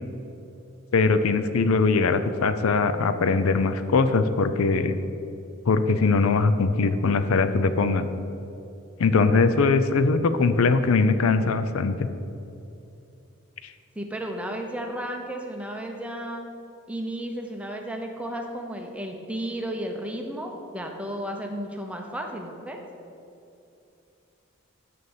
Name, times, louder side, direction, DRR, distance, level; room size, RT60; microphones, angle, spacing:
voice 1, 0.9-4.9 5.7-8.1 9.0-12.1, left 4 dB, 75° left, 11 dB, 0.5 m, -21 dB
voice 2, 14.0-16.5 16.9-22.8, right 1 dB, 5° right, 2 dB, 0.7 m, -33 dB
6.9 x 6.6 x 7.2 m, 2.8 s
head